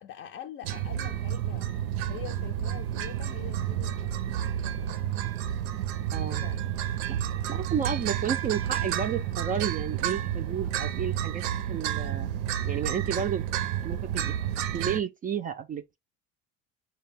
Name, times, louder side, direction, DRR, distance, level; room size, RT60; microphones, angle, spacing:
voice 1, 0.0-1.7 2.1-5.0 6.3-6.7, left 11 dB, 45° left, 0.5 m, -44 dB
sound 1, 0.6-15.0, right 11 dB, 90° right, 0.6 m, -30 dB
voice 2, 6.1-6.4 7.1-7.2 7.5-11.4 11.7-12.3 12.6-13.4 13.8-16.0, right 7 dB, 30° right, 0.3 m, -32 dB
4.4 x 2.2 x 3.2 m
supercardioid pair, 100°, 31 cm